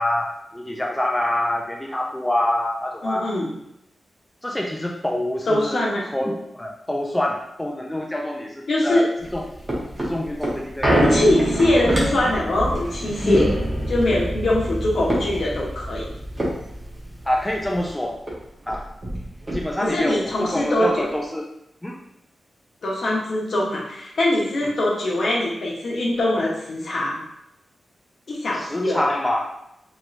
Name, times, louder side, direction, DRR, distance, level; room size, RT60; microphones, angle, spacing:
voice 1, 0.0-3.3 4.4-5.8 6.1-9.0 9.3-9.4 10.0-11.0 13.2-13.5 17.3-18.2 18.7-18.9 19.5-21.5 21.8-22.0 28.5-29.5, left 1 dB, 10° left, -1 dB, 0.4 m, -25 dB
voice 2, 3.0-3.5 5.5-6.0 8.7-9.0 10.9-13.5 13.9-16.1 19.8-21.1 22.8-27.2 28.3-29.2, left 1 dB, 65° left, -3 dB, 0.9 m, -22 dB
sound 1, 9.2-17.9 18.3-18.4 18.6-20.0 20.5-20.6, right 1 dB, 25° right, 0.9 m, -26 dB
3.2 x 2.9 x 2.5 m, 0.81 s
wide cardioid pair, 115°, 0 cm